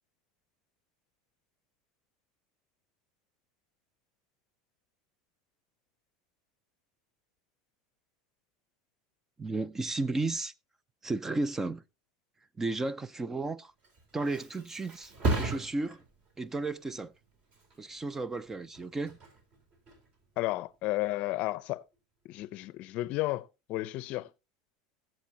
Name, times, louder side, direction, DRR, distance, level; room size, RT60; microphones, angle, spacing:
voice 1, 9.4-10.5 11.0-11.8 12.6-13.7 14.1-16.0 16.4-17.1 17.8-19.2, right 2 dB, 15° right, 0.5 m, -33 dB
Thump thud, 13.6-21.1 21.5-21.9, right 2 dB, 40° right, 3.7 m, -38 dB
voice 2, 20.4-21.8 22.2-24.3, left 18 dB, 55° left, 0.6 m, -33 dB
19.5 x 7.5 x 2.8 m
supercardioid pair, 130°, 3 cm